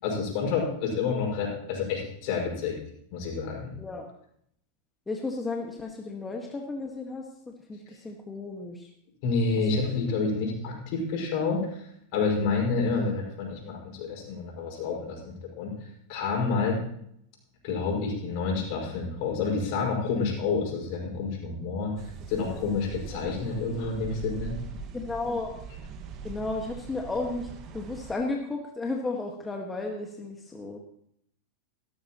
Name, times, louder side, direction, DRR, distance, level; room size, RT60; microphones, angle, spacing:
voice 1, 0.0-2.8 3.1-3.7 9.2-11.8 12.1-15.7 16.1-16.8 17.6-21.9 22.3-24.6, left 4 dB, 55° left, 0 dB, 5.9 m, -29 dB
voice 2, 3.8-4.1 5.1-8.9 9.6-9.8 10.1-10.2 22.4-22.8 24.9-25.5 26.2-27.5 27.7-30.8, left 3 dB, 15° left, 1 dB, 1.7 m, -34 dB
sound 1, 22.0-28.1, right 6 dB, 45° right, 1.7 m, -42 dB
16.5 x 13.5 x 3.1 m, 0.70 s
hypercardioid pair, 100°, 0 cm